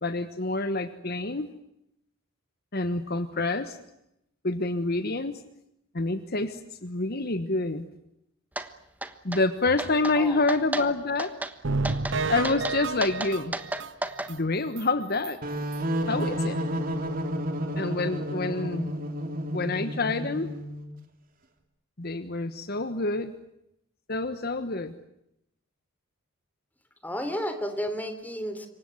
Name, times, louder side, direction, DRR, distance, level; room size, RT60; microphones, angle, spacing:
voice 1, 0.0-1.5 2.7-3.8 4.4-5.4 5.9-7.8 9.2-11.3 12.3-13.5 14.3-15.4 16.1-16.6 17.8-18.9 19.5-20.5 22.0-23.3 24.1-24.9, left 2 dB, 50° left, 11 dB, 1.3 m, -27 dB
sound 1, 8.6-8.7 9.0-9.4 9.8-10.2 10.5-10.9 11.2-11.5 11.8-12.2 12.4-14.3, right 1 dB, 10° right, 1.3 m, -32 dB
sound 2, 11.6-14.4 14.8-14.9 15.2-15.3 15.7-15.8, right 3 dB, 60° right, 0.9 m, -30 dB
sound 3, 15.4-20.9, equal, 40° right, 3.2 m, -31 dB
voice 2, 27.0-28.7, equal, 10° left, 8 dB, 3.4 m, -32 dB
27.0 x 24.0 x 7.9 m, 0.82 s
head